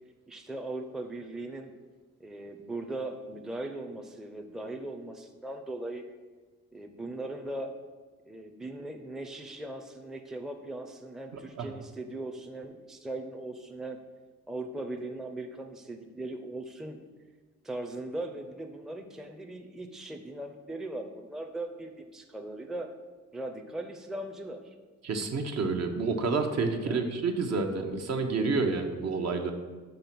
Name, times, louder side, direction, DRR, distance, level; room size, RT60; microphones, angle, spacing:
voice 1, 0.3-1.7 2.2-6.0 6.7-7.7 8.3-14.0 14.5-17.0 17.6-22.9 23.3-24.7 26.7-27.2, right 2 dB, ahead, 4 dB, 0.5 m, -39 dB
voice 2, 11.3-11.7 25.0-29.5, right 4 dB, 60° right, 4 dB, 0.8 m, -29 dB
5.4 x 4.3 x 5.9 m, 1.4 s
cardioid pair, 90°, 30 cm